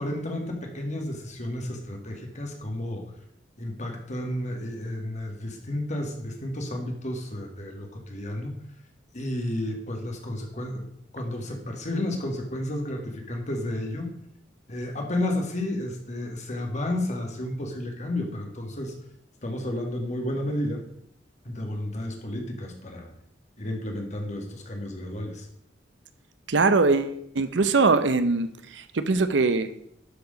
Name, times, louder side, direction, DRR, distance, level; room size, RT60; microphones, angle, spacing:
voice 1, 0.0-3.1 3.6-8.5 9.1-10.8 11.1-14.1 14.7-18.9 19.4-20.8 21.4-23.1 23.6-25.5, left 1 dB, 40° left, 2 dB, 1.9 m, -32 dB
voice 2, 26.5-29.7, right 3 dB, 75° right, 12 dB, 0.7 m, -22 dB
12.0 x 4.8 x 5.1 m, 0.72 s
head